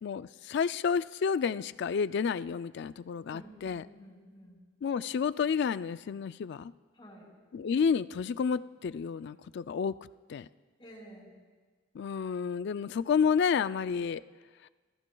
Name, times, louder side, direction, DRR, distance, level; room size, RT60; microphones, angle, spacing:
voice 1, 0.0-3.8 4.8-6.7 7.5-10.0 10.3-10.5 11.9-14.2 14.6-14.7, left 6 dB, 65° left, 15 dB, 0.3 m, -30 dB
voice 2, 3.2-4.6 6.9-7.3 10.8-11.3, equal, 25° left, -3 dB, 4.4 m, -51 dB
29.5 x 14.5 x 2.3 m, 1.4 s
head